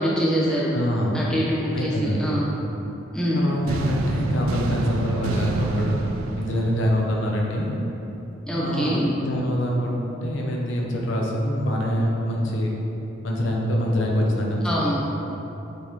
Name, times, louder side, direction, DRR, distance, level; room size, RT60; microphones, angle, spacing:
voice 1, 0.0-0.7 1.1-2.5 3.1-3.4 8.5-9.1 14.6-15.0, equal, 5° left, -6 dB, 0.8 m, -24 dB
voice 2, 0.7-1.3 1.7-2.4 3.3-6.0 6.4-7.8 8.5-12.7 13.2-15.0, equal, 65° left, -2 dB, 0.8 m, -25 dB
sound 1, 3.7-7.6, right 2 dB, 85° right, 0.4 m, -28 dB
7.4 x 4.2 x 3.6 m, 3.0 s
head